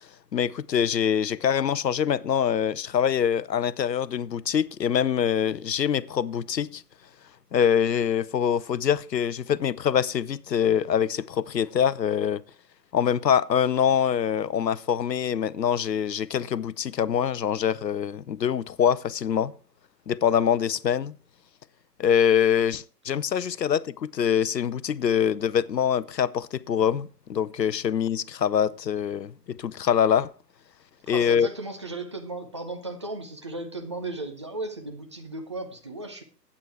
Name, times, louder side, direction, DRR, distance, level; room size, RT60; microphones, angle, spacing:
voice 1, 0.3-6.8 7.5-12.4 12.9-19.5 20.1-21.1 22.0-30.3 31.1-31.5, left 8 dB, 85° left, 0.7 m, -24 dB
voice 2, 31.1-36.2, right 2 dB, 20° right, 0.5 m, -35 dB
9.0 x 8.4 x 4.7 m
figure-of-eight pair, 135°, 49 cm